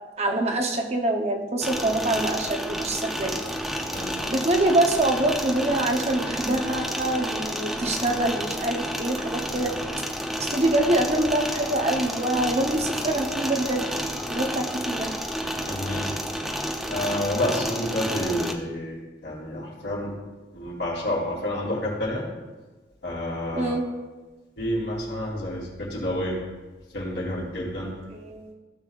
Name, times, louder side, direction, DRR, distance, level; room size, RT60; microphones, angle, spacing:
voice 1, 0.2-3.4 4.2-9.7 10.4-13.9 14.3-15.1 23.5-23.8 28.1-28.5, right 1 dB, 35° right, 2 dB, 0.8 m, -25 dB
sound 1, 1.6-18.5, equal, ahead, 0.6 m, -30 dB
voice 2, 15.7-16.1 16.9-20.1 20.5-22.2 23.0-23.7 24.6-26.4 26.9-27.9, left 1 dB, 75° left, -4 dB, 3.3 m, -29 dB
16.0 x 7.1 x 2.5 m, 1.3 s
head